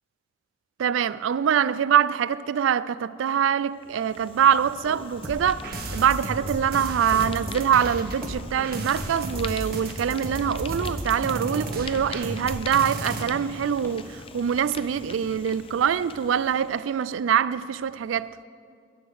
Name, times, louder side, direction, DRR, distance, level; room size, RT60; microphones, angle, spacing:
voice 1, 0.8-5.6 5.9-18.3, right 8 dB, 90° right, 0.3 m, -24 dB
Fire, 3.8-17.1, left 4 dB, 30° left, 0.5 m, -43 dB
Run, 4.8-14.0 14.3-14.4 14.8-14.9, left 1 dB, 15° left, 1.4 m, -43 dB
sound 1, 5.2-13.2, right 1 dB, 50° right, 1.1 m, -33 dB
11.5 x 6.3 x 7.8 m
head